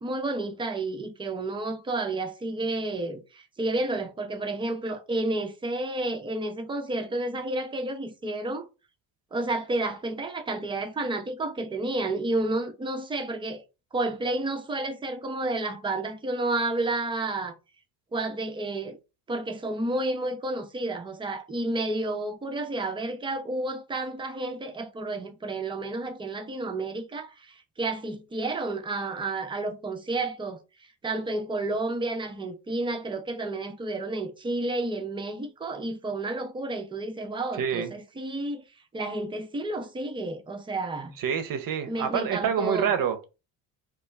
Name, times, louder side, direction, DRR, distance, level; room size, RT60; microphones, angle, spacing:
voice 1, 0.0-8.7 9.3-13.6 13.9-17.5 18.1-19.0 19.3-30.6 31.0-38.6 38.9-41.2 41.9-42.9, right 2 dB, 10° right, 0.5 m, -31 dB
voice 2, 37.6-37.9 41.2-43.3, right 8 dB, 45° right, 0.7 m, -27 dB
2.2 x 2.2 x 3.1 m
hypercardioid pair, 65°, 48 cm